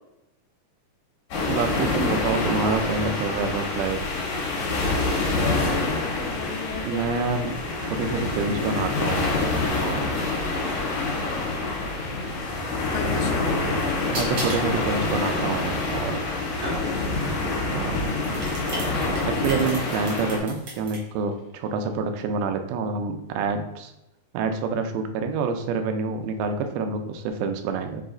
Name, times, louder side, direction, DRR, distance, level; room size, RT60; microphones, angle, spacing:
sound 1, 1.3-20.4, left 3 dB, 60° left, 2.3 m, -26 dB
voice 1, 1.4-4.0 6.8-7.6 7.8-9.4 9.8-10.1 14.1-16.2 17.7-18.0 19.3-23.9 24.3-28.0, right 4 dB, 90° right, 6 dB, 2.5 m, -27 dB
voice 2, 5.4-7.3 12.9-13.6, left 7 dB, 85° left, 6 dB, 2.4 m, -35 dB
sound 2, 8.7-22.0, left 2 dB, 45° left, 1.5 m, -44 dB
sound 3, 13.0-17.2 17.9-21.0, right 1 dB, 60° right, 1.2 m, -35 dB
5.8 x 2.4 x 3.7 m, 0.91 s
omnidirectional pair, 4.3 m